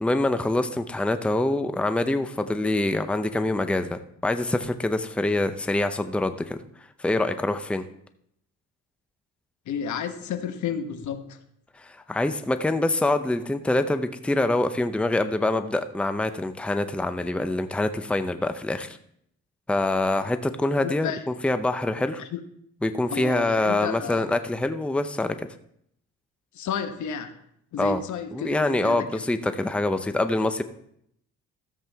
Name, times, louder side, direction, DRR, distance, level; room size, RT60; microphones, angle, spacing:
voice 1, 0.0-6.6 7.0-7.8 11.8-19.0 19.7-22.2 22.8-25.5 27.8-28.0 28.3-30.6, left 2 dB, 5° left, 0.6 m, -25 dB
voice 2, 9.7-11.4 20.8-21.2 22.2-22.4 23.1-24.3 26.5-27.4 27.7-29.2, left 7 dB, 75° left, 1.1 m, -32 dB
14.0 x 7.5 x 3.5 m
cardioid pair, 90°, 30 cm